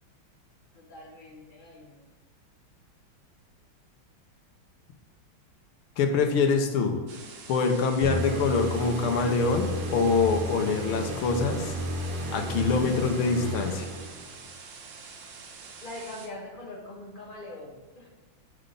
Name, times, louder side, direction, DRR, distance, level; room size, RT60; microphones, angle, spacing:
voice 1, 0.7-2.0 15.8-18.1, left 1 dB, 30° left, -2 dB, 1.2 m, -43 dB
voice 2, 6.0-7.0 7.5-11.7 12.3-13.9, left 4 dB, 85° left, 4 dB, 1.7 m, -25 dB
sound 1, 7.1-16.3, right 5 dB, 70° right, 1.4 m, -46 dB
sound 2, 8.0-14.5, equal, 85° right, 2.4 m, -33 dB
9.5 x 3.9 x 5.0 m, 1.2 s
omnidirectional pair, 2.3 m